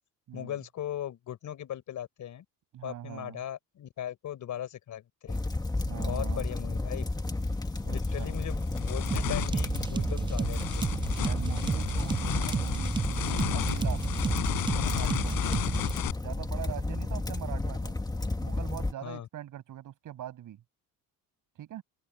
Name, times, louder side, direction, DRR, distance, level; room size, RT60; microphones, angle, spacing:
voice 1, 0.3-2.4 2.8-5.4 6.0-7.1 7.9-10.9 19.0-19.3, left 11 dB, 55° left, 4.6 m, -38 dB
voice 2, 2.7-3.4 5.8-6.5 7.8-8.3 11.2-13.0 13.2-14.0 14.7-15.6 16.2-17.9 18.4-20.6 21.6-21.8, right 12 dB, 60° right, 7.1 m, -42 dB
sound 1, 5.3-18.9, left 2 dB, 10° left, 1.8 m, -32 dB
sound 2, 7.3-7.4 7.9-16.1, left 14 dB, 75° left, 5.7 m, -34 dB
sound 3, 9.1-16.0, right 5 dB, 15° right, 0.3 m, -32 dB
open air
cardioid pair, 115°, 35 cm